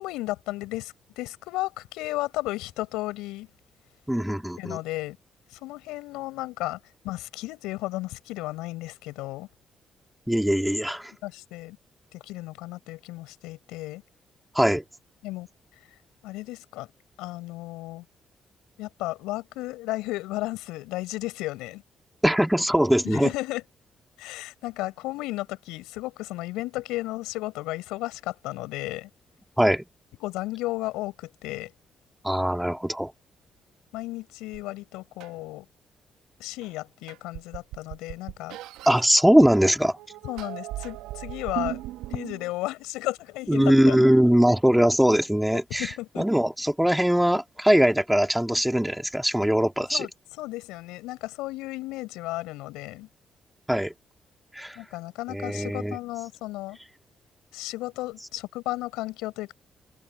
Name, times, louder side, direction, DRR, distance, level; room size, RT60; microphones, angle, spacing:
voice 1, 0.0-3.5 4.6-5.2 5.5-6.8 7.0-9.5 11.2-11.8 12.1-14.0 15.2-15.5 16.2-16.9 17.2-18.0 18.8-21.8 23.0-23.6 24.2-29.1 30.2-31.7 33.9-35.7 36.4-38.6 40.2-41.8 42.1-44.0 45.5-46.2 49.9-50.1 50.4-53.1 54.8-56.8 57.5-59.5, left 19 dB, 80° left, 7.1 m, -34 dB
voice 2, 4.1-4.8 10.3-11.1 14.6-14.8 22.2-23.3 29.6-29.8 32.2-33.1 38.9-40.0 43.5-50.1 53.7-53.9 54.5-54.8 55.3-56.0, equal, 5° right, 3.5 m, -21 dB
sound 1, 34.5-34.6 35.2-35.3 36.6-36.7 37.1-39.0 39.9-42.5, right 15 dB, 80° right, 1.7 m, -37 dB
hypercardioid pair, 45°, 0 cm